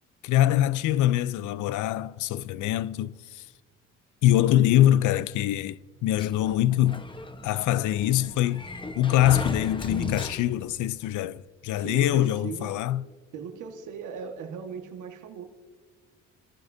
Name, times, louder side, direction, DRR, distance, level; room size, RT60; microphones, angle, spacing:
voice 1, 0.2-3.5 4.2-7.0 7.4-8.7 9.0-13.0, left 13 dB, 75° left, 0.6 m, -24 dB
Sliding door, 6.2-10.8, left 2 dB, 15° left, 1.1 m, -37 dB
voice 2, 11.8-12.8 13.3-15.4, right 7 dB, 75° right, 1.7 m, -38 dB
29.5 x 14.5 x 2.7 m
cardioid pair, 95°, 30 cm